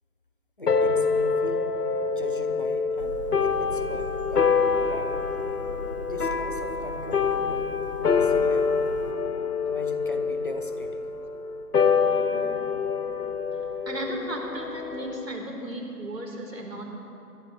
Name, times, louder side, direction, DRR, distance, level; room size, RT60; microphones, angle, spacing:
voice 1, 0.6-1.6 2.1-5.1 6.0-7.7 8.0-9.0 9.6-11.1 12.7-12.9, left 1 dB, 35° left, 5 dB, 0.7 m, -40 dB
sound 1, 0.7-15.4, left 5 dB, 70° left, 0.9 m, -26 dB
sound 2, 3.0-9.1, equal, 20° right, 0.8 m, -40 dB
voice 2, 12.2-12.6 13.9-16.9, right 1 dB, 85° right, 0 dB, 3.7 m, -35 dB
27.0 x 12.0 x 3.1 m, 2.8 s
figure-of-eight pair, 155°, 48 cm